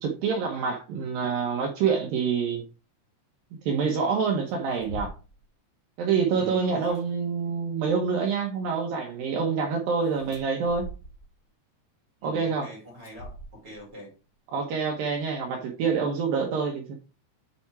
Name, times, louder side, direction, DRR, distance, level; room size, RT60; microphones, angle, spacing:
voice 1, 0.0-2.7 3.7-5.1 6.0-10.9 12.2-12.7 14.5-17.0, right 5 dB, 75° right, 2.1 m, -26 dB
sound 1, 4.5-5.4 6.7-7.0 10.0-11.3 13.0-13.9, equal, 50° left, 4.1 m, -42 dB
voice 2, 6.3-7.0 12.2-14.1, equal, 35° right, 3.0 m, -43 dB
8.5 x 4.2 x 4.6 m
omnidirectional pair, 5.3 m